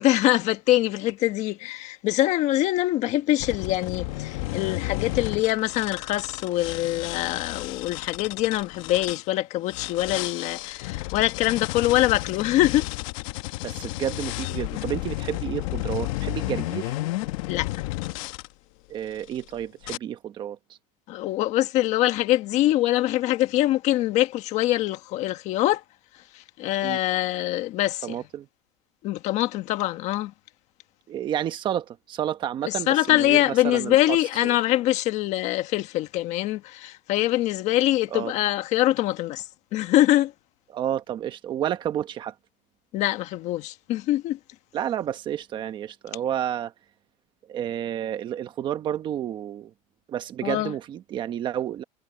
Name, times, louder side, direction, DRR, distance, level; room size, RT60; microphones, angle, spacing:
voice 1, 0.0-12.9 17.5-17.7 18.2-18.3 21.1-25.8 26.6-28.1 29.0-30.3 32.9-39.4 39.7-40.3 42.9-44.4 50.4-50.7, left 15 dB, 35° left, 1.4 m, -24 dB
sound 1, 3.4-9.2 9.7-18.5 19.1-19.4 19.8-20.0, left 19 dB, 60° left, 1.0 m, -32 dB
voice 2, 13.6-16.9 18.9-20.6 26.8-27.0 28.0-28.5 31.1-34.6 38.1-38.3 40.7-42.3 44.7-46.7 47.5-49.7 50.1-51.8, right 10 dB, 25° right, 1.1 m, -30 dB
cardioid pair, 180°, 19 cm